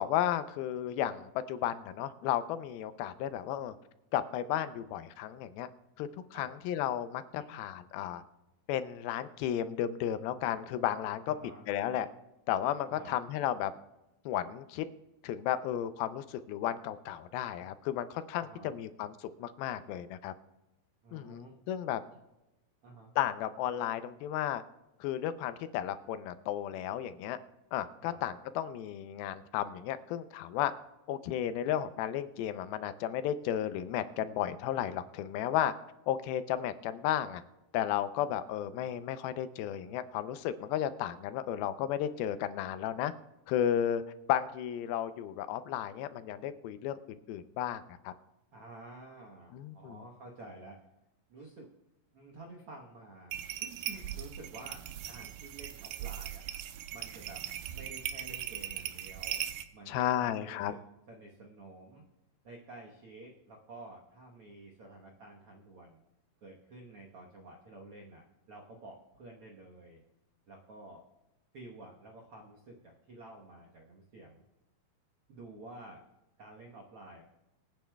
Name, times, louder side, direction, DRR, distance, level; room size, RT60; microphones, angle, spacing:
voice 1, 0.0-3.8 4.1-5.7 6.0-8.2 8.7-11.3 11.7-12.1 12.5-13.7 14.3-14.9 15.2-19.1 19.4-20.3 21.1-22.0 23.2-24.6 25.0-27.4 27.7-30.7 31.1-35.7 36.1-37.4 37.7-43.1 43.5-44.0 44.3-48.1 49.5-50.0 59.9-60.7, left 11 dB, 85° left, 12 dB, 2.5 m, -33 dB
voice 2, 11.2-11.6 12.9-13.2 18.4-18.7 21.0-21.6 22.8-23.1 28.0-28.2 48.5-50.8 51.3-51.7 52.1-53.3 53.9-56.4 56.9-57.4 57.7-59.4 59.7-60.8 61.1-62.0 62.4-66.0 66.4-70.0 70.5-71.0 71.5-74.4 75.3-76.0 76.4-77.2, right 2 dB, 70° right, -1 dB, 1.3 m, -50 dB
sound 1, 53.3-59.6, right 11 dB, 90° right, 2.5 m, -39 dB
25.0 x 9.4 x 2.3 m, 0.95 s
omnidirectional pair, 4.3 m